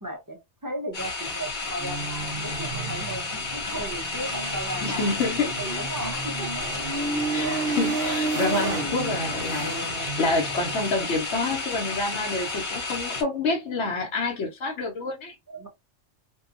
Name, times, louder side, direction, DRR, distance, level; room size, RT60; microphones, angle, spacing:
voice 1, 0.0-5.2 5.6-6.7 7.4-7.7 8.0-8.8 15.5-15.7, right 2 dB, 30° right, 0.4 m, -35 dB
sound 1, 0.9-13.2, left 3 dB, 50° left, 0.7 m, -32 dB
sound 2, 1.8-10.9, right 3 dB, 60° right, 0.9 m, -32 dB
voice 2, 4.8-5.5 7.1-15.4, left 3 dB, 75° left, 1.0 m, -28 dB
2.7 x 2.2 x 2.4 m
omnidirectional pair, 1.2 m